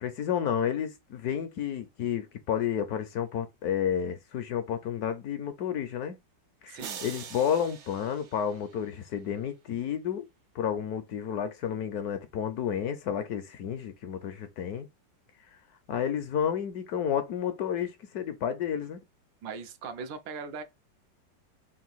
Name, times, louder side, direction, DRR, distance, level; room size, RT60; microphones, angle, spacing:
voice 1, 0.0-6.2 6.6-10.2 10.5-14.9 15.9-19.0, left 8 dB, 70° left, 1.0 m, -31 dB
voice 2, 6.7-7.0 19.4-20.6, right 5 dB, 85° right, 1.4 m, -39 dB
sound 1, 6.8-9.1, right 7 dB, 60° right, 0.7 m, -44 dB
3.9 x 2.5 x 3.9 m
omnidirectional pair, 2.0 m